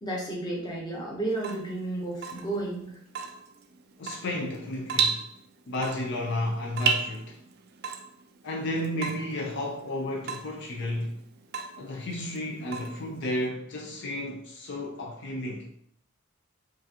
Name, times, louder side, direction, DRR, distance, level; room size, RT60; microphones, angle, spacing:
voice 1, 0.0-3.0, right 2 dB, 20° left, 0.8 m, -32 dB
Water tap faucet / Drip, 1.3-13.5, right 6 dB, 45° right, 0.3 m, -34 dB
voice 2, 4.0-5.2 5.7-7.4 8.4-11.2 11.8-15.7, left 1 dB, 55° left, 0.5 m, -32 dB
4.7 x 2.5 x 2.8 m
head